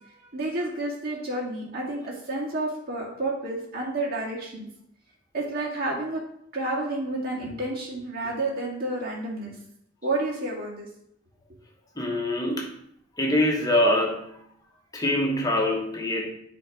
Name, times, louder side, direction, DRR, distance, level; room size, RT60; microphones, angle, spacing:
voice 1, 0.0-4.7 5.3-6.2 6.5-9.5 10.0-10.9, right 2 dB, 50° right, -4 dB, 2.2 m, -30 dB
voice 2, 12.0-12.7 13.2-14.4 14.9-16.3, left 1 dB, 20° left, 1 dB, 1.2 m, -24 dB
8.6 x 3.6 x 4.9 m, 0.73 s
head